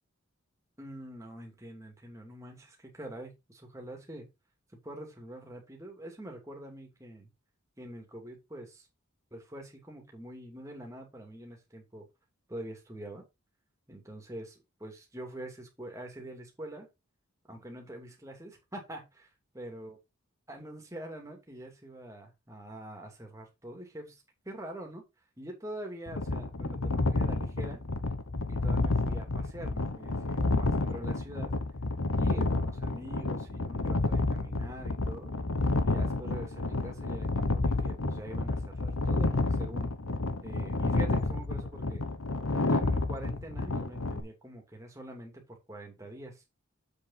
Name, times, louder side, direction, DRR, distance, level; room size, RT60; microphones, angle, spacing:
voice 1, 0.8-4.3 4.8-7.3 7.8-8.9 9.3-12.1 12.5-13.2 13.9-16.9 17.5-19.3 19.5-19.9 20.5-25.0 25.4-27.8 28.5-31.6 32.1-35.3 35.8-39.9 40.4-42.0 42.5-46.4, right 1 dB, 15° right, 1 dB, 2.5 m, -45 dB
sound 1, 26.1-44.2, left 2 dB, 85° left, 1.2 m, -30 dB
7.4 x 6.9 x 3.9 m, 0.23 s
head